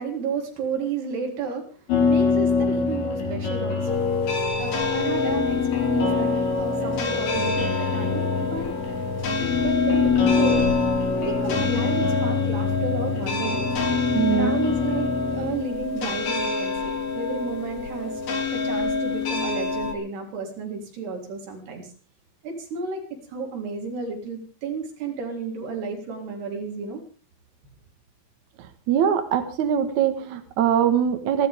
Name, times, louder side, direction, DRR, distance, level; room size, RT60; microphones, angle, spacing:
voice 1, 0.0-4.3 4.6-8.8 9.3-10.7 11.2-13.8 14.3-18.2 18.5-21.9 22.4-27.0, right 4 dB, 80° right, 2 dB, 5.6 m, -32 dB
sound 1, 1.9-15.6, left 5 dB, 70° left, 6.7 m, -25 dB
sound 2, 3.9-19.9, left 4 dB, 50° left, 3.2 m, -27 dB
voice 2, 14.1-14.5 28.6-31.5, right 9 dB, 55° right, 7 dB, 2.6 m, -22 dB
28.0 x 12.0 x 3.6 m, 0.34 s
omnidirectional pair, 4.6 m